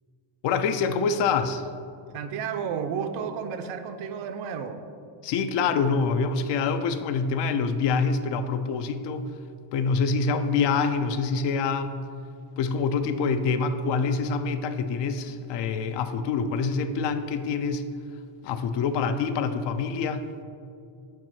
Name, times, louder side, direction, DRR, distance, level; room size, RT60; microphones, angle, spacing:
voice 1, 0.4-1.7 5.2-9.3 9.7-12.0 12.6-17.9 18.4-20.3, left 5 dB, 65° left, 10 dB, 0.5 m, -26 dB
voice 2, 2.1-4.8, right 7 dB, 85° right, 8 dB, 0.7 m, -32 dB
5.6 x 4.5 x 6.1 m, 2.4 s
cardioid pair, 170°, 47 cm